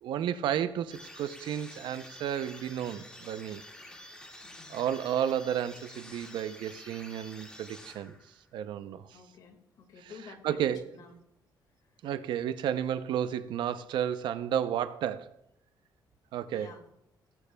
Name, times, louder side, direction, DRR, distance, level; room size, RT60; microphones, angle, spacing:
voice 1, 0.0-3.6 4.7-8.1 8.5-9.1 10.4-10.8 12.0-15.3 16.3-16.7, right 9 dB, 80° right, 0.6 m, -32 dB
sound 1, 0.9-8.4, left 1 dB, 10° left, 1.9 m, -49 dB
voice 2, 4.4-4.8 9.1-10.7 10.9-11.2 16.5-16.9, left 6 dB, 55° left, 1.8 m, -50 dB
18.5 x 13.5 x 2.3 m
cardioid pair, 180°, 8 cm